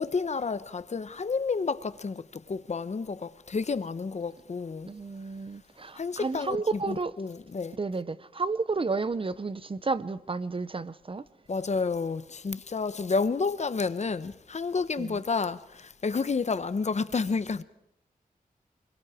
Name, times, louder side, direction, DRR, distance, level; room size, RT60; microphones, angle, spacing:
voice 1, 0.0-4.9 5.9-7.8 11.5-17.6, left 4 dB, 50° left, 0.9 m, -30 dB
voice 2, 4.9-7.1 7.8-11.2 15.0-15.2, right 4 dB, 35° right, 0.7 m, -31 dB
27.5 x 22.0 x 4.9 m
wide cardioid pair, 110°, 15 cm